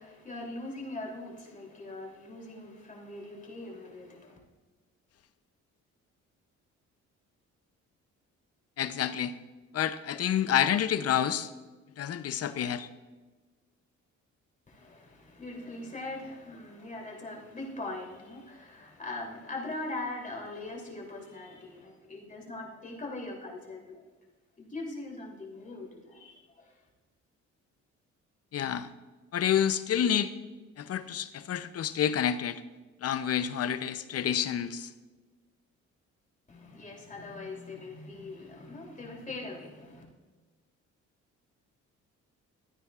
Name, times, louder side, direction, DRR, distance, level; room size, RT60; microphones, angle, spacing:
voice 1, 0.0-4.4 14.7-24.0 24.6-26.8 36.5-40.0, left 2 dB, 25° left, -2 dB, 3.0 m, -41 dB
voice 2, 8.8-9.3 9.7-11.5 12.0-12.9 28.5-28.9 29.3-30.3 30.8-32.6 33.0-34.9, left 9 dB, 55° left, 13 dB, 0.6 m, -28 dB
14.0 x 9.3 x 2.4 m, 1.3 s
cardioid pair, 90°, 30 cm